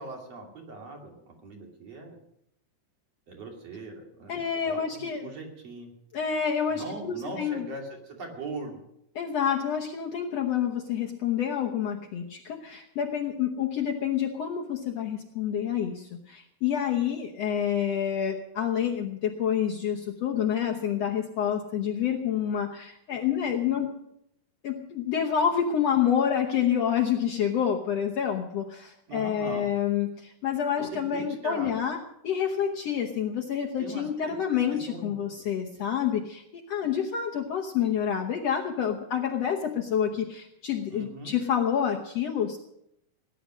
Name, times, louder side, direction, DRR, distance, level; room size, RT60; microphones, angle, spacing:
voice 1, 0.0-2.2 3.3-5.9 6.7-8.8 29.1-29.7 30.9-31.8 33.8-34.4 34.9-35.2 40.9-41.3, right 2 dB, 50° right, 1 dB, 3.6 m, -40 dB
voice 2, 4.3-5.3 6.1-7.7 9.2-23.9 24.6-42.6, left 8 dB, 65° left, 1 dB, 1.8 m, -28 dB
18.5 x 11.0 x 6.2 m, 0.78 s
omnidirectional pair, 3.9 m